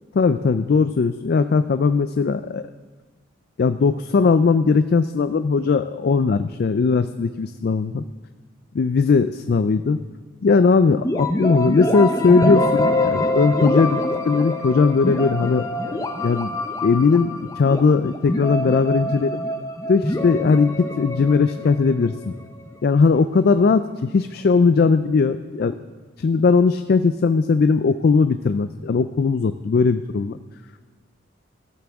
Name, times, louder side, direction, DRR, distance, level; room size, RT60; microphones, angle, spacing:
voice 1, 0.1-2.7 3.6-8.0 8.7-10.0 10.4-16.5 16.8-19.4 19.9-22.3 22.8-25.7 26.2-30.4, left 4 dB, 50° left, 11 dB, 0.4 m, -19 dB
sound 1, 11.0-22.8, left 1 dB, 15° left, 0.7 m, -25 dB
14.0 x 13.5 x 3.5 m, 1.4 s
head